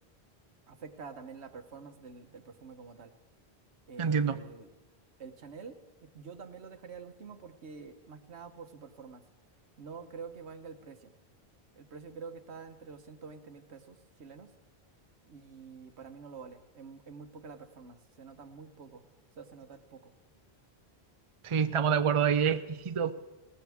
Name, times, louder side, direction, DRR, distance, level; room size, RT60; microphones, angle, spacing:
voice 1, 0.7-3.1 3.9-4.7 5.2-9.2 9.8-11.1 11.8-14.5 15.3-19.0 19.4-20.1, right 5 dB, 90° right, 8 dB, 1.4 m, -47 dB
voice 2, 4.0-4.4 21.4-23.1, right 7 dB, 35° right, 10 dB, 0.6 m, -27 dB
20.0 x 18.0 x 3.5 m, 1.1 s
omnidirectional pair, 1.1 m